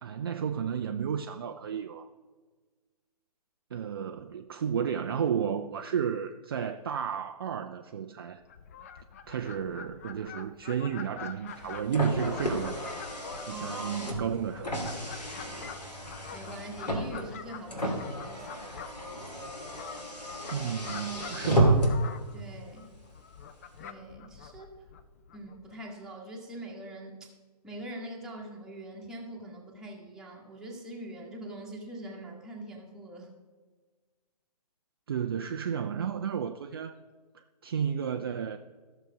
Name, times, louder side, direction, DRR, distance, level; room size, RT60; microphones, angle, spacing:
voice 1, 0.0-2.1 3.7-8.4 9.3-13.0 13.5-14.8 20.5-22.0 35.1-37.0 37.6-38.6, right 7 dB, 35° right, 0.4 m, -32 dB
Fowl, 8.4-25.7, left 7 dB, 20° left, 0.4 m, -46 dB
Car, 11.5-22.1, right 1 dB, 80° left, 2.7 m, -32 dB
voice 2, 13.5-14.3 14.6-14.7 15.4-15.8 16.3-18.7 22.3-22.9 23.8-24.7 25.3-27.3 27.6-33.3, right 1 dB, 5° right, 1.5 m, -43 dB
14.0 x 6.7 x 5.0 m
figure-of-eight pair, 130°, 21 cm